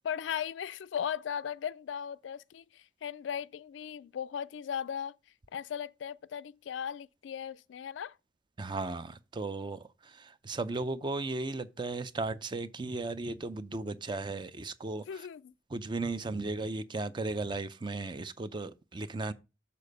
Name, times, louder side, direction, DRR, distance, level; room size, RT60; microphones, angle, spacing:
voice 1, 0.0-5.1 5.5-8.2 15.1-15.5, left 8 dB, 75° left, 0.3 m, -37 dB
voice 2, 8.6-15.3 15.7-19.3, right 3 dB, 25° right, 0.4 m, -36 dB
6.8 x 4.1 x 6.5 m
head